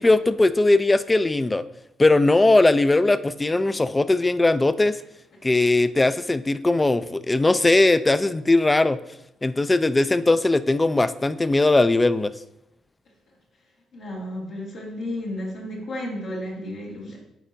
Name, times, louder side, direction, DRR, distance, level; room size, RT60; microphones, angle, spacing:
voice 1, 0.0-1.6 2.0-5.0 5.4-9.0 9.4-12.3, left 2 dB, 20° left, 14 dB, 0.3 m, -19 dB
voice 2, 13.9-17.2, left 1 dB, 75° left, -5 dB, 1.8 m, -33 dB
9.5 x 4.3 x 2.6 m, 0.83 s
cardioid pair, 90°, 0 cm